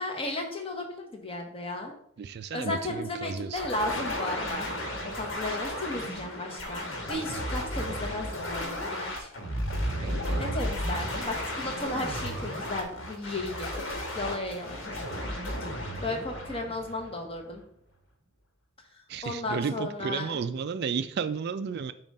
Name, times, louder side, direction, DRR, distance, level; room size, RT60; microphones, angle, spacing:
voice 1, 0.0-1.9 2.5-9.3 10.4-15.0 16.0-17.6 19.2-20.3, left 2 dB, 25° left, 2 dB, 1.1 m, -35 dB
voice 2, 2.2-3.6 10.0-10.4 19.1-21.9, right 6 dB, 55° right, 11 dB, 0.3 m, -33 dB
sound 1, 3.6-17.4, equal, 65° left, 1.4 m, -34 dB
7.2 x 2.5 x 5.4 m, 0.71 s
head